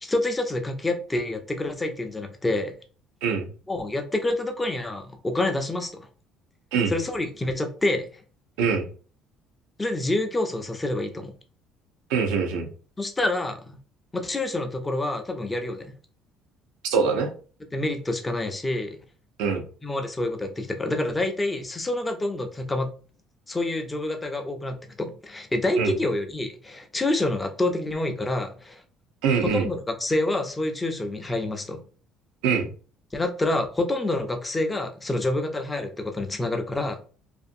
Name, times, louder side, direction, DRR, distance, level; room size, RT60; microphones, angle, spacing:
voice 1, 0.0-2.7 3.7-5.9 6.9-8.1 9.8-11.3 13.0-13.6 14.1-16.0 17.7-19.0 19.8-22.9 23.5-28.8 29.4-31.8 33.1-37.0, left 2 dB, 15° left, 6 dB, 0.4 m, -27 dB
voice 2, 12.1-12.7 16.9-17.3 19.4-19.6 25.8-25.9 29.2-29.7 32.4-32.7, right 5 dB, 90° right, 4 dB, 0.5 m, -23 dB
2.5 x 2.5 x 2.6 m, 0.39 s
cardioid pair, 130°, 0 cm